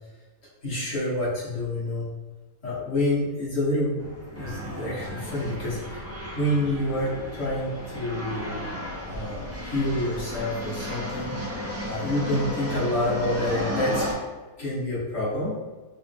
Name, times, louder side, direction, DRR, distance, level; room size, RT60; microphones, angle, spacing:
voice 1, 0.6-2.1 2.6-6.0 6.3-8.7 9.1-14.1 14.6-15.6, left 1 dB, 55° left, -8 dB, 1.8 m, -28 dB
sound 1, 4.0-14.1, left 1 dB, 20° right, 0.4 m, -34 dB
5.4 x 2.0 x 3.4 m, 1.3 s
omnidirectional pair, 1.6 m